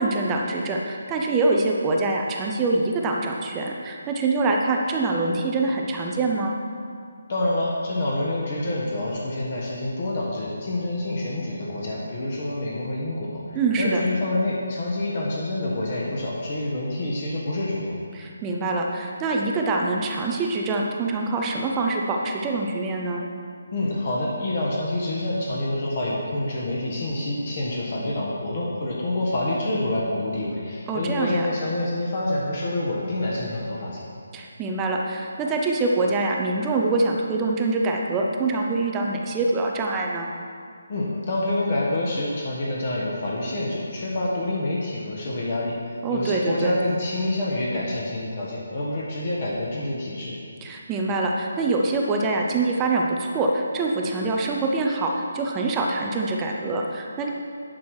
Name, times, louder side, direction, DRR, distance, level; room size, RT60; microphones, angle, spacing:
voice 1, 0.0-6.6 13.5-14.0 18.1-23.2 30.9-31.5 34.3-40.3 46.0-46.7 50.6-57.3, right 3 dB, 10° right, 0 dB, 0.5 m, -24 dB
voice 2, 7.3-18.0 23.7-34.1 40.9-50.4, left 1 dB, 35° left, -4 dB, 1.3 m, -27 dB
10.5 x 6.0 x 4.7 m, 2.2 s
hypercardioid pair, 170°, 0 cm